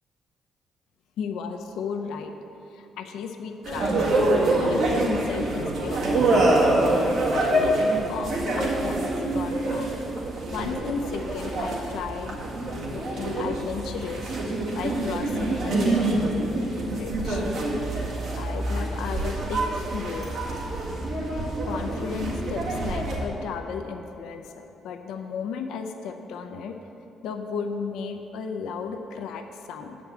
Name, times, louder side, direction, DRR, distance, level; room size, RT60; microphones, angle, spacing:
voice 1, 1.2-2.3 2.7-4.0 4.5-6.5 7.4-10.0 10.5-14.3 14.7-17.4 18.3-20.3 21.7-26.8 27.2-30.0, left 6 dB, 85° left, 5 dB, 0.6 m, -34 dB
sound 1, 3.6-23.2, right 2 dB, 75° right, 1.8 m, -26 dB
8.0 x 5.2 x 7.4 m, 2.9 s
cardioid pair, 90°, 0 cm